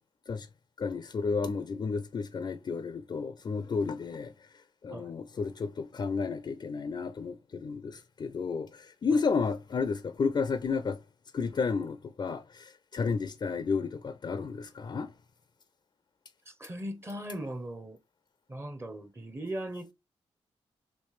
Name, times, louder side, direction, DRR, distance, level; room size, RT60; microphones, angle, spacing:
voice 1, 0.8-4.3 4.8-11.0 11.3-15.1, left 5 dB, 40° left, 0.4 m, -32 dB
voice 2, 16.5-18.0 18.5-19.9, right 1 dB, 25° right, 0.7 m, -39 dB
3.2 x 3.1 x 3.0 m
cardioid pair, 70°, 11 cm